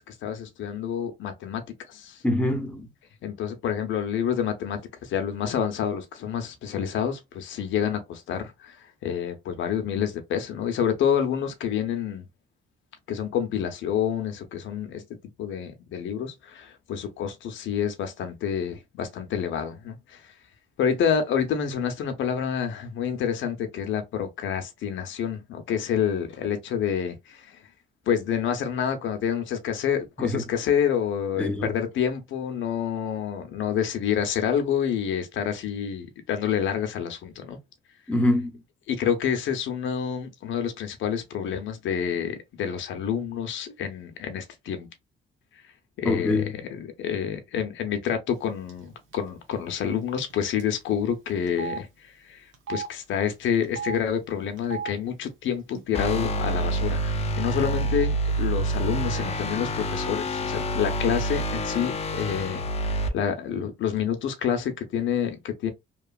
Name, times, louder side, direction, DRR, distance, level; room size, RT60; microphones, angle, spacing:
voice 1, 0.0-1.6 1.9-2.2 3.2-12.3 13.1-15.0 15.4-20.3 20.8-27.6 28.1-37.6 38.9-44.9 46.0-46.4 46.7-65.7, left 8 dB, 75° left, 0.7 m, -28 dB
voice 2, 2.2-2.9 30.2-30.4 31.4-31.7 38.1-38.5 46.0-46.6, left 1 dB, 5° left, 0.8 m, -24 dB
Telephone, 48.7-48.9 49.1-49.3 50.2-50.3 50.6-50.7 51.5-51.8 52.5-52.9 53.6-54.0 54.6-54.9 55.7-55.8 56.1-56.8, right 7 dB, 75° right, 1.0 m, -35 dB
sound 1, 55.9-63.1, right 1 dB, 30° left, 0.6 m, -27 dB
2.9 x 2.3 x 2.3 m
cardioid pair, 90°, 20 cm